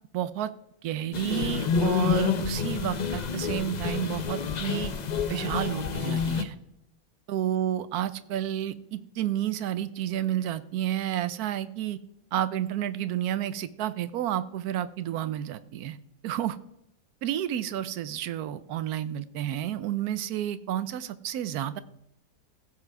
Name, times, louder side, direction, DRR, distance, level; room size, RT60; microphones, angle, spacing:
voice 1, 0.1-0.5 0.8-4.9 5.3-6.5 7.3-12.0 12.3-16.0 16.2-16.6 17.2-21.8, right 11 dB, 85° right, 14 dB, 1.2 m, -30 dB
sound 1, 1.1-6.4, left 5 dB, 45° left, 0.6 m, -28 dB
16.0 x 5.7 x 4.6 m, 0.80 s
omnidirectional pair, 1.6 m